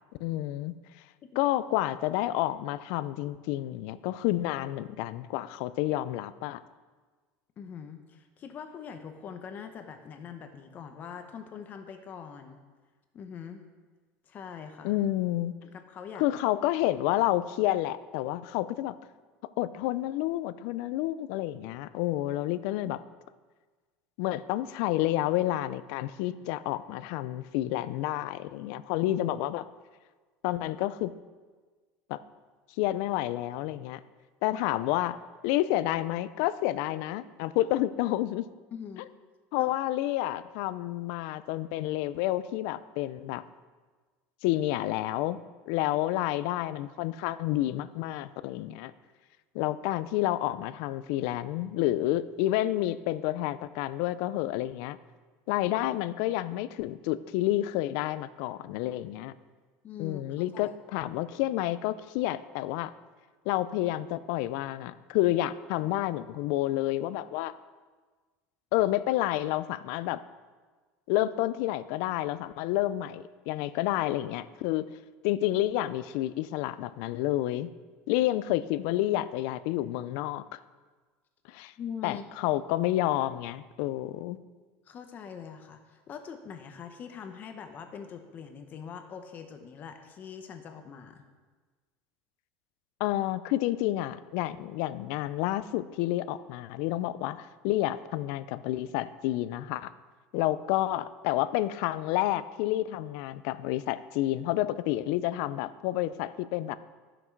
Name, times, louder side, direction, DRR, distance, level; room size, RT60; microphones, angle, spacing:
voice 1, 0.2-0.7 1.4-6.6 14.8-15.5 16.1-19.0 19.6-23.0 24.2-29.6 30.4-31.1 32.1-32.2 32.8-34.0 34.4-35.2 35.4-38.5 39.5-43.4 44.4-45.4 45.7-48.9 49.5-55.0 55.5-59.3 60.0-62.9 63.5-67.5 68.7-70.2 71.1-74.9 75.2-77.7 78.1-80.6 81.5-81.7 82.0-84.4 93.0-99.9 100.3-106.8, left 15 dB, 70° left, 15 dB, 0.4 m, -29 dB
voice 2, 7.6-12.6 13.1-13.6 14.3-15.0 15.6-16.2 34.5-34.6 38.7-39.1 39.6-39.7 59.8-60.2 60.5-60.8 81.8-82.2 84.9-91.2, left 7 dB, 30° left, 6 dB, 0.8 m, -43 dB
13.5 x 6.0 x 4.6 m, 1.4 s
cardioid pair, 155°, 6 cm